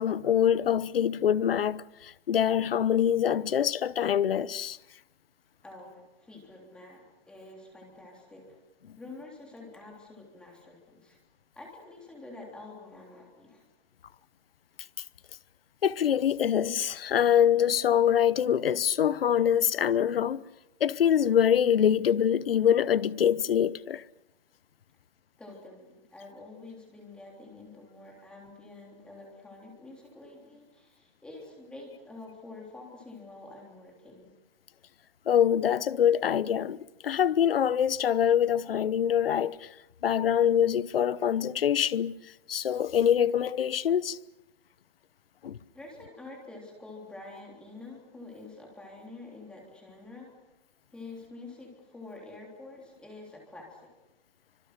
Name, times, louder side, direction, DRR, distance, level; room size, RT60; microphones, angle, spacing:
voice 1, 0.0-4.8 15.8-20.4 20.8-24.0 35.3-36.8 37.0-39.7 40.0-42.2 42.5-44.2 45.4-45.6, left 9 dB, 65° left, 1.0 m, -24 dB
voice 2, 5.6-8.6 9.0-11.2 11.5-13.6 25.4-34.3 45.7-50.3 50.9-53.9, left 2 dB, 5° left, 3.2 m, -47 dB
27.5 x 25.5 x 6.6 m
hypercardioid pair, 175°, 31 cm